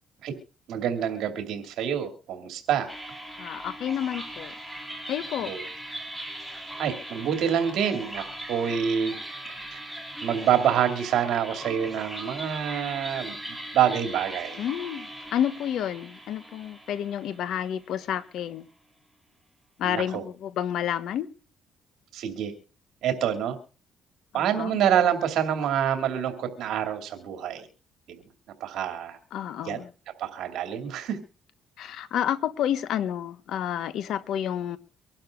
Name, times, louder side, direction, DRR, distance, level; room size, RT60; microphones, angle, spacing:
voice 1, 0.7-2.9 5.4-5.6 6.8-9.2 9.7-9.8 10.2-13.3 13.7-14.6 19.8-20.2 22.1-22.5 23.0-23.6 24.3-27.7 28.6-29.2 29.6-29.8 30.2-31.2, right 9 dB, 75° right, 7 dB, 2.7 m, -26 dB
sound 1, 2.9-18.1, right 1 dB, ahead, 2.7 m, -39 dB
voice 2, 3.4-4.5 5.1-5.5 14.6-18.7 19.8-21.3 24.3-24.8 29.3-29.9 31.8-34.8, left 10 dB, 70° left, 14 dB, 1.2 m, -30 dB
24.5 x 12.0 x 2.5 m, 0.36 s
cardioid pair, 125°, 0 cm